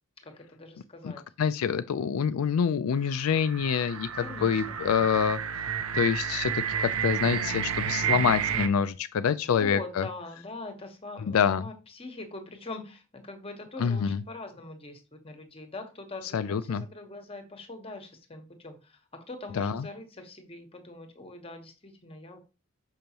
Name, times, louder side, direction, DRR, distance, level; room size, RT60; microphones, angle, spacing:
voice 1, 0.2-1.2 4.2-5.6 8.1-8.7 9.5-22.4, left 2 dB, 25° left, 1.2 m, -43 dB
voice 2, 1.0-5.4 5.9-10.1 11.2-11.6 13.8-14.2 16.3-16.8 19.5-19.9, left 7 dB, 85° left, 0.4 m, -26 dB
sound 1, 3.1-8.7, right 8 dB, 85° right, 0.7 m, -31 dB
6.4 x 5.3 x 2.9 m
head